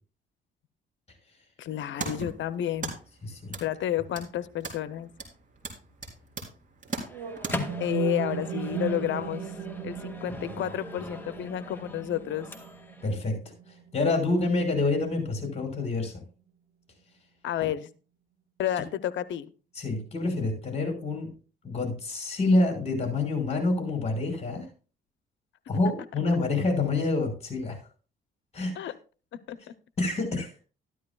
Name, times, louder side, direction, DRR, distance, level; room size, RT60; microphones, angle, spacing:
voice 1, 1.6-3.0 3.6-5.1 7.8-9.6 9.8-12.5 17.4-17.9 18.6-19.4 28.7-28.9 29.3-29.6, left 11 dB, 70° left, 14 dB, 0.7 m, -31 dB
sound 1, 1.6-7.5, right 4 dB, 40° right, 3.8 m, -40 dB
voice 2, 3.2-3.5 13.0-13.4 13.9-16.2 19.8-21.3 21.6-24.7 25.7-27.8 28.5-28.7 30.0-30.5, left 2 dB, 30° left, 3 dB, 5.6 m, -27 dB
Microwave oven, 7.1-13.1, left 1 dB, 10° left, 2.0 m, -40 dB
sound 2, 7.1-15.1, right 7 dB, 90° right, 1.5 m, -37 dB
13.5 x 12.0 x 2.3 m, 0.36 s
cardioid pair, 90°, 20 cm